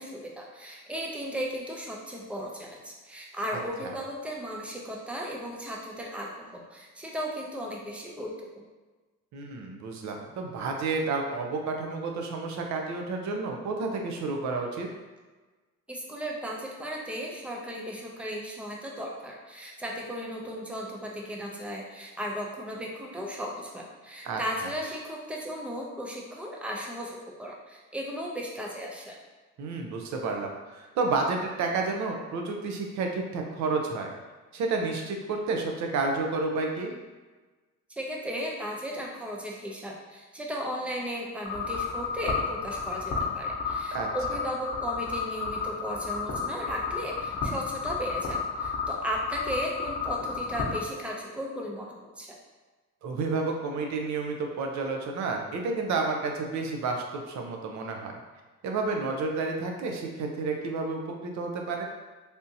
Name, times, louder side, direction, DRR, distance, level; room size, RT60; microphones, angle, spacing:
voice 1, 0.0-8.6 15.9-29.2 37.9-52.4, equal, 5° right, -1 dB, 0.4 m, -36 dB
voice 2, 9.3-14.9 24.2-24.4 29.6-34.1 34.5-36.9 43.9-44.1 53.0-58.2 58.6-61.8, right 3 dB, 70° right, 2 dB, 0.6 m, -30 dB
sound 1, 41.4-50.8, left 5 dB, 55° left, 0.9 m, -32 dB
3.5 x 2.7 x 2.7 m, 1.3 s
cardioid pair, 135°, 29 cm